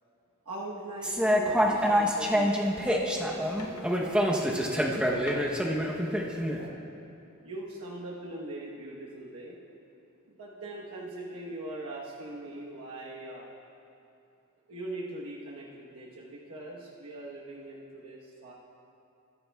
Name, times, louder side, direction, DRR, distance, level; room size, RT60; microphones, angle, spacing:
voice 1, 0.4-6.1 6.4-6.7 7.4-9.6 10.3-13.5 14.7-18.5, right 1 dB, 75° right, -4 dB, 1.1 m, -41 dB
sound 1, 1.0-6.6, equal, 5° right, 0.8 m, -26 dB
sound 2, 1.5-2.2 3.6-3.9 5.1-5.9, left 3 dB, 80° left, 0.9 m, -45 dB
22.0 x 10.0 x 2.3 m, 2.7 s
head